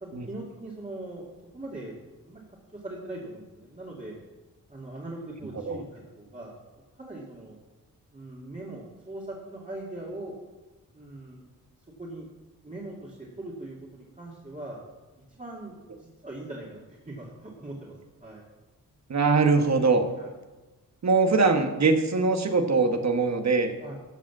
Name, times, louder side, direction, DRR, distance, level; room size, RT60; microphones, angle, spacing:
voice 1, 0.0-1.9 2.2-2.4 2.7-4.1 4.7-6.5 6.9-7.6 8.1-10.3 10.9-11.4 12.0-12.3 12.6-14.8 15.3-17.9 18.2-18.4 20.2-20.3 23.8-23.9, right 2 dB, 20° right, -4 dB, 2.4 m, -40 dB
voice 2, 19.1-20.1 21.0-23.7, right 4 dB, 50° right, 6 dB, 1.3 m, -22 dB
14.0 x 5.1 x 7.3 m, 1.2 s
cardioid pair, 75°, 34 cm